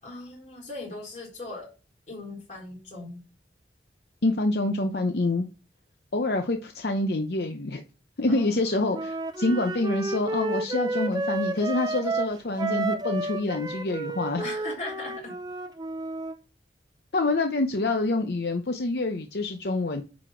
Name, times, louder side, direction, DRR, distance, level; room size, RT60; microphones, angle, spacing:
voice 1, 0.0-1.7 2.1-3.2 8.3-9.0 14.4-15.4, left 2 dB, 40° left, -2 dB, 3.9 m, -39 dB
voice 2, 4.2-5.5 6.1-7.8 8.2-14.4 17.1-20.0, left 2 dB, 65° left, 5 dB, 0.7 m, -26 dB
Wind instrument woodwind instrument, 8.9-16.3, right 2 dB, 20° right, 0.6 m, -31 dB
9.6 x 4.2 x 4.5 m, 0.32 s
head